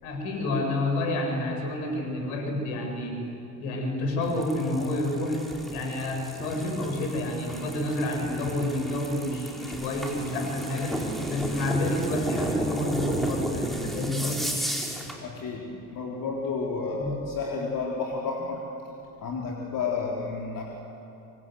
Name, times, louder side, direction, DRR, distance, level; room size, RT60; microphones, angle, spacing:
voice 1, 0.0-3.2 3.6-5.4 5.7-11.0 11.3-14.4 16.9-17.1, left 1 dB, 65° left, 3 dB, 7.0 m, -29 dB
sound 1, 4.2-15.2, right 1 dB, ahead, 5.2 m, -34 dB
voice 2, 15.2-18.6 19.2-20.6, left 4 dB, 40° left, -2 dB, 4.0 m, -31 dB
26.0 x 25.5 x 8.0 m, 2.8 s
figure-of-eight pair, 55°, 47 cm